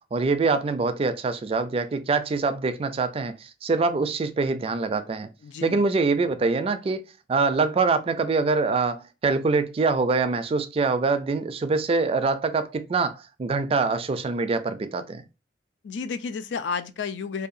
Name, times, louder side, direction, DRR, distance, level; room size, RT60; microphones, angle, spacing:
voice 1, 0.1-5.3 5.6-7.0 7.3-15.2, right 4 dB, 35° right, 0.3 m, -24 dB
voice 2, 5.4-5.8 15.8-17.5, left 5 dB, 80° left, 0.4 m, -31 dB
2.7 x 2.3 x 2.5 m
head